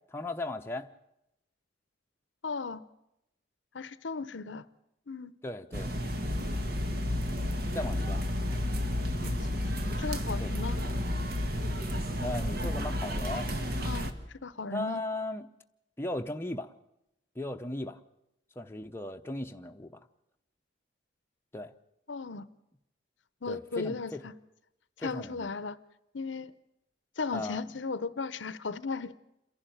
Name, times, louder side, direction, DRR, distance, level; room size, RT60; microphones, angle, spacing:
voice 1, 0.1-0.9 5.4-5.9 7.7-8.2 10.4-10.5 12.2-13.5 14.7-15.5 16.0-16.7 17.4-18.0 18.6-20.0 21.5-21.7 23.5-24.2 25.0-25.5 27.3-27.6, left 2 dB, 15° left, 4 dB, 0.8 m, -37 dB
voice 2, 2.4-2.8 3.7-4.7 5.1-5.3 9.2-10.8 13.8-14.1 14.4-15.0 22.1-22.5 23.4-24.3 25.0-25.8 26.1-26.5 27.2-29.1, left 4 dB, 75° left, 16 dB, 0.8 m, -36 dB
sound 1, 5.7-14.1, left 1 dB, 55° right, 1.6 m, -31 dB
28.0 x 11.5 x 9.1 m, 0.85 s
head